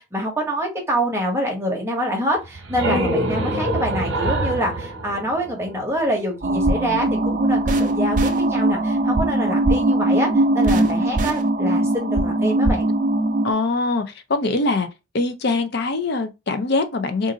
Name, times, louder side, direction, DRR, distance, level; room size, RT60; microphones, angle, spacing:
voice 1, 0.0-10.3 10.5-12.9, equal, 15° right, 0.9 m, -25 dB
sound 1, 2.4-6.0, right 1 dB, 75° right, 0.9 m, -25 dB
sound 2, 6.4-13.5, right 1 dB, 40° right, 0.5 m, -20 dB
voice 2, 13.4-14.0 14.3-14.9 15.1-17.3, left 3 dB, 55° left, 0.5 m, -22 dB
2.5 x 2.5 x 3.8 m
head